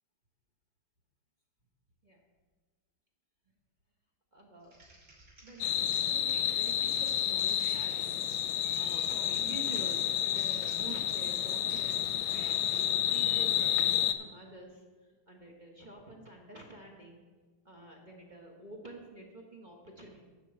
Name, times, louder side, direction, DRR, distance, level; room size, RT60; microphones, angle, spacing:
voice 1, 4.3-4.8 5.4-8.2 8.8-14.8 15.3-17.2 17.6-20.2, right 2 dB, 30° right, -1 dB, 0.9 m, -48 dB
Typing, 4.6-12.8, right 2 dB, 50° right, 3.3 m, -57 dB
sound 1, 5.6-14.1, left 11 dB, 80° left, 1.4 m, -30 dB
12.0 x 4.6 x 7.7 m, 1.4 s
omnidirectional pair, 2.4 m